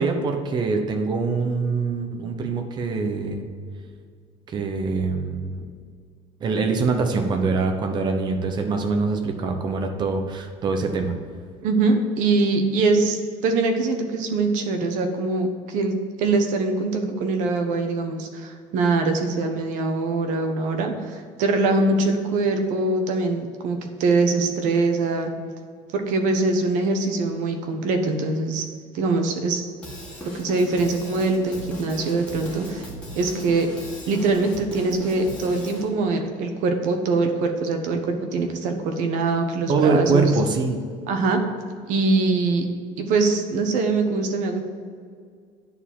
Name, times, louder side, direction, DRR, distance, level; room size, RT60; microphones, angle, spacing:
voice 1, 0.0-3.5 4.5-5.6 6.4-11.1 39.7-40.8, right 4 dB, 30° right, 5 dB, 1.0 m, -24 dB
voice 2, 11.6-25.3 25.9-28.6 28.9-29.6 30.2-32.9 33.1-33.7 34.1-40.3 41.1-41.4 41.9-42.6 43.0-44.6, right 3 dB, 60° right, 5 dB, 1.2 m, -23 dB
Drum kit / Drum, 29.8-35.8, left 1 dB, 10° left, 2.1 m, -37 dB
9.8 x 4.4 x 7.4 m, 2.1 s
cardioid pair, 170°, 14 cm